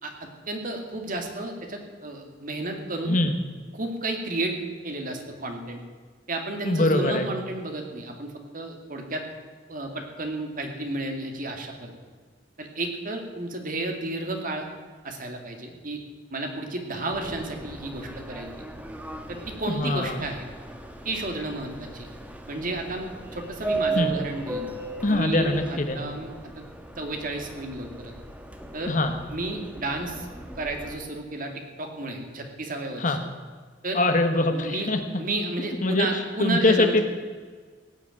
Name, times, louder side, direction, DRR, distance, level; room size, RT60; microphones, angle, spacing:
voice 1, 0.0-3.2 3.7-4.6 4.8-5.8 6.3-9.2 9.7-11.9 12.6-14.7 15.0-16.0 16.3-18.5 19.3-20.5 21.0-22.1 22.5-24.7 25.1-26.6 27.0-28.1 28.7-29.0 29.3-30.3 30.6-31.5 31.8-33.2 33.8-34.0 34.5-34.9 35.2-37.0, right 2 dB, 50° right, 3 dB, 2.3 m, -32 dB
voice 2, 3.0-3.4 6.6-7.3 19.7-20.2 23.9-24.1 25.0-26.0 28.9-29.1 33.0-33.2 33.9-35.0 35.8-37.0, left 2 dB, 45° left, 7 dB, 1.3 m, -23 dB
Subway metro underground, 17.1-30.9, right 3 dB, 10° right, 1.4 m, -37 dB
17.5 x 7.1 x 9.0 m, 1.5 s
head